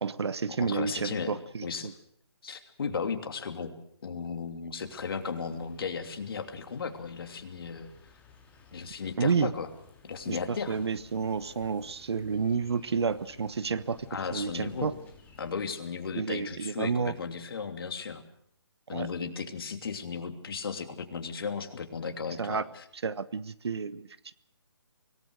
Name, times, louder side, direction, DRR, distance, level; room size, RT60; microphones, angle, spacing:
voice 1, 0.0-1.9 9.2-9.5 10.3-14.9 16.2-17.1 18.9-19.1 22.4-22.6 22.9-24.1, right 5 dB, 70° right, 15 dB, 1.2 m, -30 dB
voice 2, 0.6-1.3 1.6-1.9 2.4-3.7 4.0-7.9 8.7-9.7 10.0-10.8 14.1-14.9 15.4-18.2 18.9-22.8, left 5 dB, 55° left, 6 dB, 2.9 m, -35 dB
sound 1, 4.8-15.5, left 4 dB, 10° left, 3.0 m, -57 dB
25.5 x 18.5 x 6.5 m, 0.69 s
hypercardioid pair, 155°, 14 cm